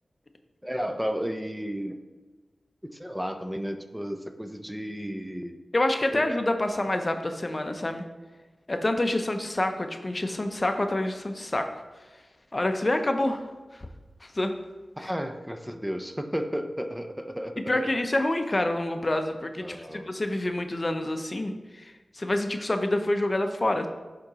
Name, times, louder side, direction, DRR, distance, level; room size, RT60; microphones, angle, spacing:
voice 1, 0.6-2.0 2.8-5.6 6.1-6.3 15.0-17.9 19.6-20.1, equal, 5° right, 6 dB, 0.6 m, -33 dB
voice 2, 5.7-8.0 8.7-11.8 12.5-13.4 14.2-14.6 15.0-15.1 17.6-21.8 22.1-23.9, left 1 dB, 40° left, 6 dB, 0.6 m, -27 dB
11.0 x 3.8 x 2.9 m, 1.2 s
cardioid pair, 45°, 0 cm